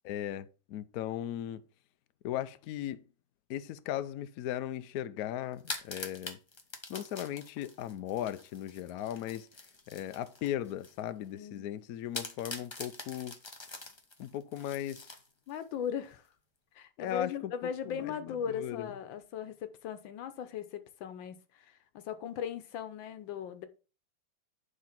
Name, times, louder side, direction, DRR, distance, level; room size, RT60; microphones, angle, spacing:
voice 1, 0.0-1.6 2.2-3.0 3.5-6.4 6.9-9.5 9.9-13.3 14.2-15.1 17.0-17.3 17.9-18.9, left 11 dB, 70° left, 0.9 m, -37 dB
sound 1, 5.5-11.0 11.4-11.5 12.1-15.6, left 2 dB, 20° left, 0.7 m, -44 dB
voice 2, 11.3-11.7 15.5-16.2 16.8-23.7, left 8 dB, 90° left, 1.7 m, -38 dB
9.6 x 3.8 x 5.8 m
omnidirectional pair, 2.0 m